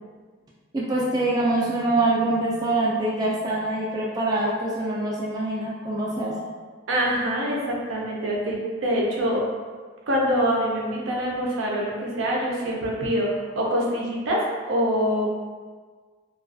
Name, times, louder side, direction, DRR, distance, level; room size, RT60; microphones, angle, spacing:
voice 1, 0.7-6.4, right 2 dB, 20° right, -5 dB, 0.3 m, -24 dB
voice 2, 6.9-9.4 10.1-14.4 14.7-15.3, equal, 80° right, -3 dB, 0.5 m, -25 dB
2.4 x 2.3 x 2.5 m, 1.5 s
head